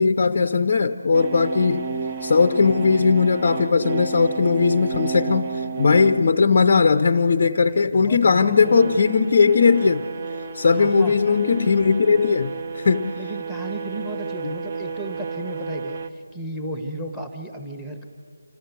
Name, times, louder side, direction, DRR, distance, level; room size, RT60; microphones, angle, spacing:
voice 1, 0.0-1.9 2.2-10.1 10.5-13.2 14.4-14.5, left 5 dB, 35° left, 10 dB, 0.5 m, -18 dB
sound 1, 1.1-6.3 8.2-16.1, right 5 dB, 30° right, 0.7 m, -32 dB
voice 2, 7.7-8.9 10.7-11.4 13.2-18.1, right 1 dB, 5° right, 4 dB, 1.2 m, -34 dB
28.0 x 12.5 x 8.1 m, 2.3 s
figure-of-eight pair, 165°, 0 cm